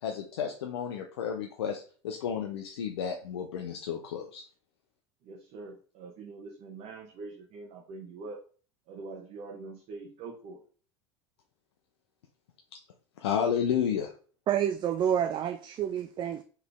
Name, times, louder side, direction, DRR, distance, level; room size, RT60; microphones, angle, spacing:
voice 1, 0.0-4.4 13.2-14.1, left 8 dB, 80° left, 0.5 m, -32 dB
voice 2, 5.2-8.4 8.9-10.6, right 3 dB, 55° right, 0.9 m, -44 dB
voice 3, 14.5-16.4, right 9 dB, 35° right, 0.4 m, -28 dB
4.0 x 3.2 x 3.4 m
hypercardioid pair, 85°, 14 cm